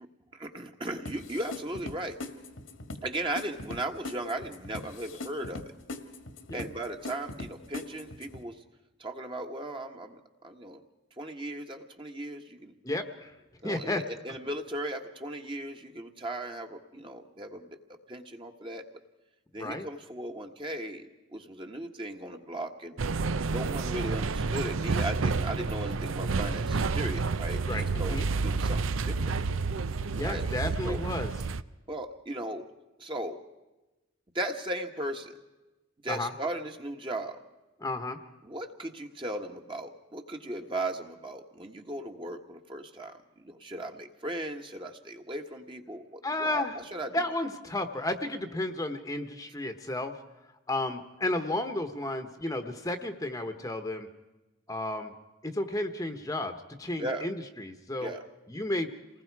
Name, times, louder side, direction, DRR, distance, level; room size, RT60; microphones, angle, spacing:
voice 1, 0.3-2.2 3.0-5.7 6.5-8.6 9.0-10.8 11.2-12.7 13.6-17.8 18.1-18.8 19.5-22.9 23.4-28.2 28.4-29.4 30.2-31.0 31.9-32.7 33.0-33.4 34.3-35.4 36.0-37.4 38.4-46.6 46.9-47.2 57.0-57.3 58.0-58.2, right 1 dB, 25° right, 4 dB, 1.5 m, -37 dB
sound 1, 1.1-8.4, left 2 dB, 80° left, 1.8 m, -41 dB
voice 2, 12.8-13.3 13.6-14.0 19.6-19.9 27.6-28.3 30.1-31.3 36.1-36.3 37.8-38.2 46.2-46.8 47.1-50.1 50.7-54.1 54.7-55.1 55.4-58.1 58.5-58.9, left 1 dB, 15° left, 7 dB, 1.1 m, -32 dB
sound 2, 23.0-31.6, right 4 dB, 80° right, 0.6 m, -30 dB
28.5 x 20.0 x 4.8 m, 1.0 s
head